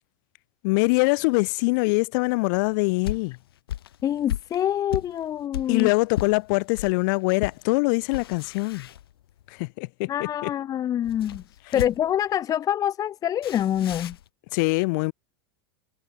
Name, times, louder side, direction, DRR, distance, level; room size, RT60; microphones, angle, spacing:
voice 1, 0.6-3.4 5.7-8.9 9.5-10.5 11.7-11.8 14.5-15.1, left 29 dB, 60° left, 3.9 m, -23 dB
sound 1, 2.5-7.0 7.4-7.6 8.0-9.5 11.0-12.2 13.4-14.3, left 12 dB, 85° left, 6.5 m, -35 dB
voice 2, 4.0-5.9 10.1-11.4 11.7-14.2, left 10 dB, 30° left, 1.1 m, -25 dB
supercardioid pair, 120°, 12 cm